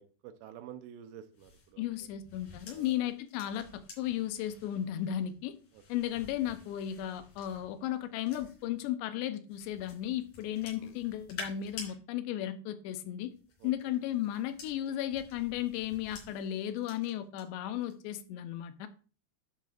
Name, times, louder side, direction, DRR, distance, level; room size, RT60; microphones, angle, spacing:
voice 1, 0.0-1.9 2.7-3.0 5.7-5.8 10.8-11.0 13.6-13.7, right 10 dB, 80° right, 9 dB, 2.8 m, -50 dB
sound 1, 1.3-8.9 9.5-11.9 13.2-17.4 17.8-18.2, left 4 dB, 55° left, 4.7 m, -51 dB
voice 2, 1.8-5.5 5.9-13.3 13.6-18.9, left 12 dB, 85° left, 10 dB, 2.9 m, -35 dB
11.0 x 7.5 x 2.5 m, 0.37 s
omnidirectional pair, 5.0 m